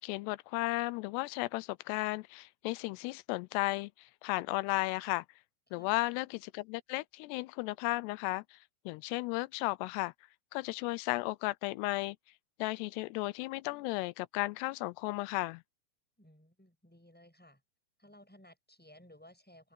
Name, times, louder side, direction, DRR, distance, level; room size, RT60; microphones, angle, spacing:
voice 1, 0.0-5.3 5.7-8.6 8.9-10.1 10.5-12.2 12.6-15.6, left 21 dB, 90° left, 2.7 m, -34 dB
voice 2, 16.2-17.6 18.0-19.7, left 1 dB, ahead, 6.9 m, -58 dB
omnidirectional pair, 4.7 m